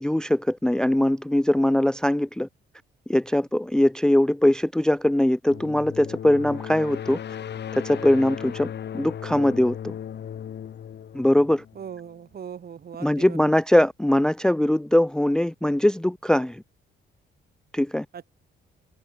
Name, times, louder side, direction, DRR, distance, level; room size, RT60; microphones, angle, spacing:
voice 1, 0.0-2.5 3.1-7.2 7.8-9.9 11.1-11.6 13.0-16.6 17.7-18.1, left 1 dB, 5° left, 0.5 m, -21 dB
sound 1, 5.5-12.2, left 9 dB, 60° left, 4.0 m, -36 dB
voice 2, 11.7-13.6 18.1-18.3, right 8 dB, 50° right, 3.1 m, -39 dB
cardioid pair, 90°, 20 cm